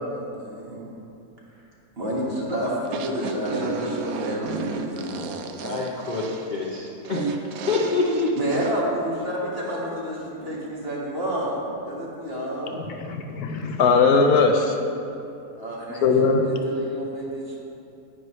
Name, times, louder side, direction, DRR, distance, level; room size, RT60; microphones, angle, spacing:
voice 1, 0.1-0.9 2.0-5.3 8.4-12.8 15.5-17.6, equal, 40° right, -5 dB, 1.7 m, -30 dB
sound 1, 2.8-8.7, right 4 dB, 70° right, 1.0 m, -32 dB
voice 2, 5.6-7.3 7.7-8.5, left 3 dB, 55° left, -2 dB, 0.5 m, -26 dB
voice 3, 12.9-14.8 16.0-16.5, left 4 dB, 75° left, 4 dB, 1.1 m, -19 dB
10.0 x 9.5 x 3.1 m, 2.7 s
omnidirectional pair, 1.7 m